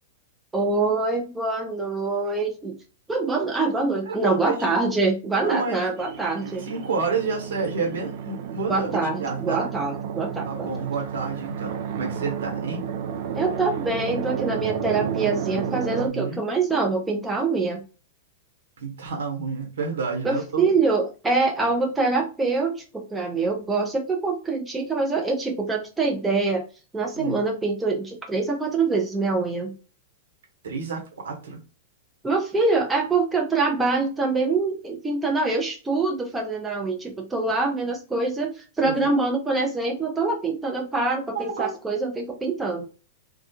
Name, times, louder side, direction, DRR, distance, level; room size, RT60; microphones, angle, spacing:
voice 1, 0.5-2.8 3.1-6.7 8.7-10.7 13.3-17.8 20.2-26.6 26.9-29.7 32.2-42.8, right 3 dB, 10° right, 1 dB, 0.6 m, -25 dB
voice 2, 4.0-4.8 5.4-5.8 6.6-9.7 10.4-12.8 16.0-16.4 18.8-20.6 27.1-27.4 30.6-31.6 38.8-38.9 41.3-41.8, right 4 dB, 75° right, 1 dB, 1.1 m, -30 dB
sound 1, 6.0-16.1, right 8 dB, 55° right, 0.5 m, -31 dB
2.3 x 2.3 x 2.8 m, 0.33 s
hypercardioid pair, 115°, 0 cm